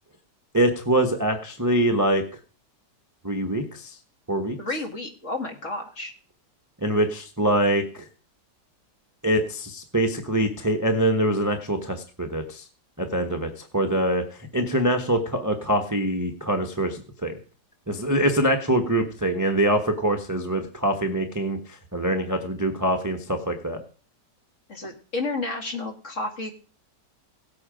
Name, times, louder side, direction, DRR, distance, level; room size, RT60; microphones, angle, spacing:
voice 1, 0.5-2.2 3.2-4.0 4.3-4.6 6.8-8.1 9.2-12.6 13.0-17.3 17.9-23.8, right 1 dB, 10° right, 6 dB, 1.0 m, -24 dB
voice 2, 4.6-6.1 24.7-26.5, left 2 dB, 45° left, 4 dB, 2.3 m, -31 dB
17.5 x 8.4 x 5.1 m, 0.41 s
omnidirectional pair, 1.9 m